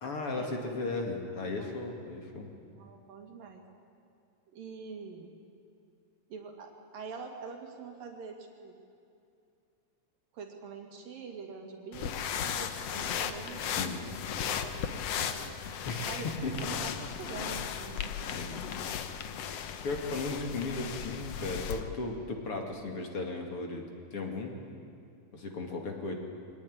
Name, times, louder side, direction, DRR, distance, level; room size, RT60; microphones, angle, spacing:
voice 1, 0.0-2.5 13.7-14.0 15.9-16.6 18.3-18.6 19.8-23.8 24.1-24.5 25.3-26.1, left 3 dB, 45° left, 2 dB, 3.0 m, -36 dB
voice 2, 2.7-3.6 4.5-5.3 6.3-8.8 10.3-14.1 14.4-15.6 16.1-16.3 16.6-18.8, right 5 dB, 90° right, 2 dB, 4.2 m, -45 dB
sound 1, 11.9-21.8, left 8 dB, 65° left, 1.8 m, -36 dB
23.5 x 18.5 x 9.9 m, 2.5 s
omnidirectional pair, 3.9 m